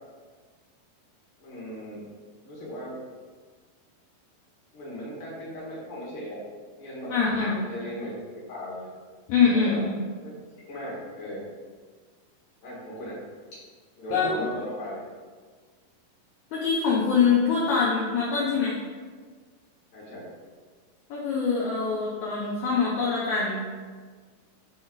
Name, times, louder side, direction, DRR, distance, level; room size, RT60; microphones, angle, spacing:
voice 1, 1.4-2.0 2.4-3.0 4.7-6.4 6.7-7.1 7.4-8.9 9.5-9.8 10.2-10.3 10.6-11.4 12.6-13.2 14.0-15.0 19.9-20.2, equal, 40° left, -7 dB, 2.2 m, -37 dB
voice 2, 7.1-7.6 9.3-10.0 14.1-14.3 16.5-18.8 21.1-23.6, left 5 dB, 70° left, -5 dB, 1.9 m, -24 dB
5.9 x 4.2 x 3.9 m, 1.5 s
omnidirectional pair, 4.0 m